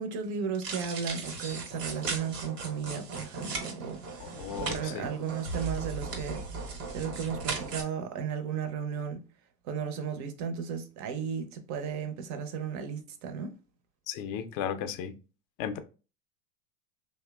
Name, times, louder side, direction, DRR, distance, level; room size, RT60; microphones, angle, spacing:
voice 1, 0.0-6.4 6.9-9.2 9.6-13.5, right 7 dB, 40° right, 0.5 m, -35 dB
sound 1, 0.5-7.8, right 4 dB, 85° right, 1.0 m, -37 dB
voice 2, 4.4-5.1 14.1-15.1 15.6-15.8, left 8 dB, 45° left, 0.4 m, -35 dB
2.7 x 2.1 x 2.2 m
hypercardioid pair, 105°, 47 cm